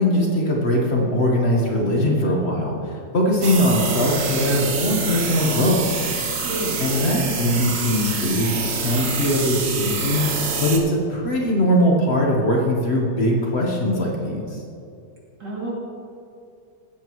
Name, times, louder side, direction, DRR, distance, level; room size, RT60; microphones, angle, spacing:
voice 1, 0.0-5.8 6.8-10.2 10.6-14.6, left 1 dB, 40° left, -2 dB, 1.4 m, -21 dB
sound 1, 3.4-10.8, right 4 dB, 55° right, 1.3 m, -26 dB
voice 2, 6.4-6.8 15.4-15.7, right 2 dB, 85° right, -6 dB, 3.5 m, -29 dB
15.5 x 8.0 x 3.1 m, 2.6 s
omnidirectional pair, 1.8 m